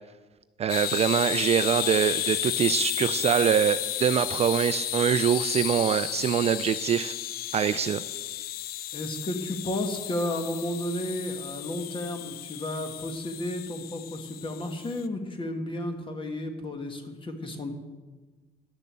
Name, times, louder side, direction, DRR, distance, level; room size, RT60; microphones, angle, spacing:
voice 1, 0.6-7.1 7.5-8.0, right 8 dB, 40° right, 13 dB, 0.4 m, -24 dB
sound 1, 0.7-15.0, left 13 dB, 65° left, 0.5 m, -33 dB
voice 2, 8.9-17.7, left 1 dB, 30° left, 6 dB, 1.6 m, -33 dB
11.5 x 6.8 x 7.4 m, 1.3 s
cardioid pair, 110°, 17 cm